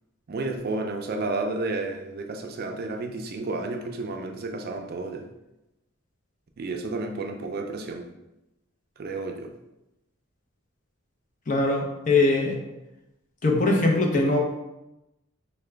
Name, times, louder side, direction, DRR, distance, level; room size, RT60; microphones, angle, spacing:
voice 1, 0.3-5.2 6.6-8.1 9.0-9.5, right 3 dB, 50° right, 4 dB, 0.4 m, -31 dB
voice 2, 11.5-12.6 13.4-14.4, left 2 dB, 40° left, 1 dB, 0.6 m, -21 dB
4.7 x 2.2 x 3.3 m, 0.93 s
head